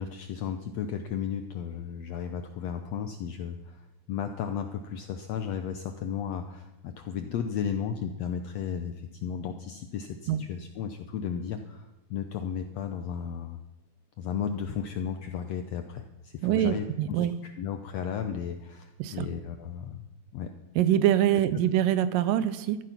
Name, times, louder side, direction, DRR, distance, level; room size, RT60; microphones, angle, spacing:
voice 1, 0.0-3.8 4.1-13.6 14.2-20.1 20.3-20.5, left 8 dB, 75° left, 7 dB, 1.5 m, -34 dB
voice 2, 16.4-17.3 19.0-19.3 20.8-22.8, right 11 dB, 80° right, 14 dB, 2.4 m, -24 dB
15.5 x 13.0 x 5.8 m, 1.0 s
omnidirectional pair, 3.9 m